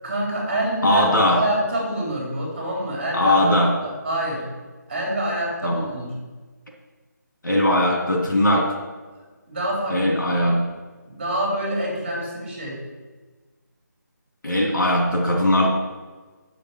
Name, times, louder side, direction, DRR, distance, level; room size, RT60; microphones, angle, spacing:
voice 1, 0.0-1.0 1.3-3.5 3.8-4.5 4.9-6.1 9.5-10.5 11.1-12.8, right 1 dB, 30° right, -3 dB, 3.8 m, -26 dB
voice 2, 0.8-1.4 3.1-3.7 5.6-5.9 7.4-8.7 9.9-10.6 14.4-15.7, left 1 dB, 85° left, -1 dB, 3.5 m, -19 dB
7.7 x 7.0 x 8.1 m, 1.3 s
figure-of-eight pair, 175°, 10 cm